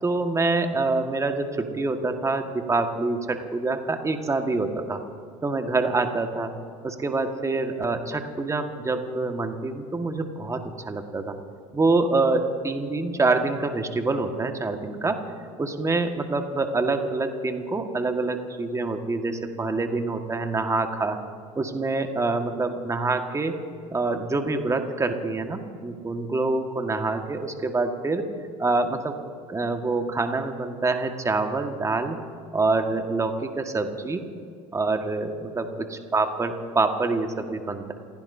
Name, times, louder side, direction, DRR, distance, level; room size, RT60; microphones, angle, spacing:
voice 1, 0.0-5.0 5.4-6.5 6.8-11.4 11.7-15.2 15.6-21.2 21.5-23.5 23.9-28.3 28.6-29.1 29.5-32.2 32.5-34.2 34.7-37.9, right 3 dB, 20° right, 5 dB, 1.7 m, -26 dB
29.0 x 16.0 x 2.8 m, 2.3 s
hypercardioid pair, 75°, 16 cm